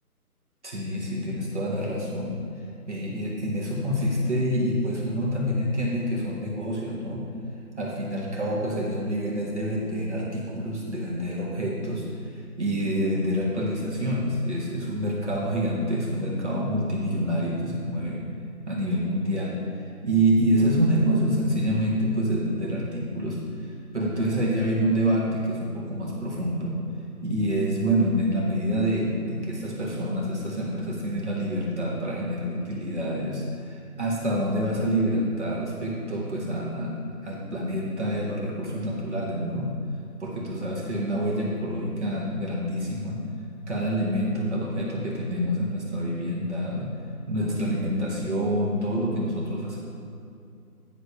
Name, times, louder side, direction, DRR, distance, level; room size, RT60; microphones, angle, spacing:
voice 1, 0.6-2.4 2.9-7.2 7.8-18.2 18.7-19.6 20.0-23.4 23.9-26.8 27.2-39.8 40.2-43.2 43.7-46.9 47.3-49.8, equal, 50° right, -5 dB, 1.6 m, -27 dB
9.8 x 4.0 x 5.9 m, 2.5 s
figure-of-eight pair, 180°, 46 cm